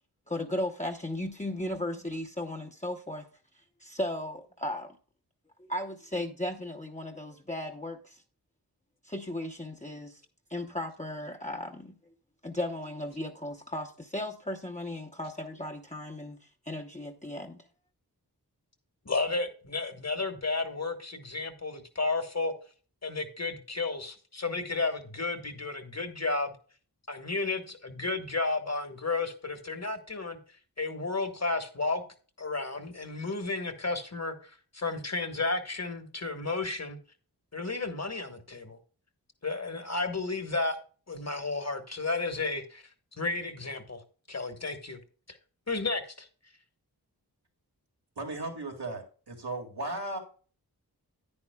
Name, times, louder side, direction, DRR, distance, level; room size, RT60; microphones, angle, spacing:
voice 1, 0.3-3.3 3.8-5.0 5.7-8.2 9.0-10.2 10.5-11.9 12.4-17.6, left 1 dB, 20° left, 1 dB, 0.8 m, -36 dB
voice 2, 19.0-22.5 23.0-26.5 27.1-30.4 30.8-32.0 32.4-37.0 37.5-38.8 39.4-40.8 41.1-42.8 43.2-44.0 44.3-45.0 45.3-45.4 45.7-46.3, left 3 dB, 40° left, 8 dB, 1.4 m, -32 dB
voice 3, 48.2-50.2, right 2 dB, 85° right, 1 dB, 2.1 m, -36 dB
9.7 x 9.7 x 2.3 m, 0.39 s
wide cardioid pair, 50°, 39 cm